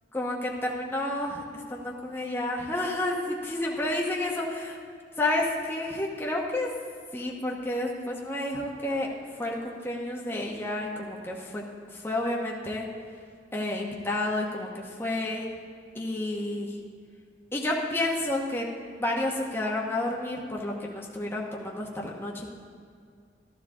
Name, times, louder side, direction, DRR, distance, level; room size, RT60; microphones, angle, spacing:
voice 1, 0.1-1.4 1.7-4.8 5.2-6.7 7.1-9.1 9.4-11.6 11.9-12.9 13.5-15.5 15.9-16.7 17.5-18.7 19.0-22.5, left 1 dB, 15° left, -2 dB, 1.0 m, -30 dB
13.5 x 12.0 x 3.7 m, 2.2 s
head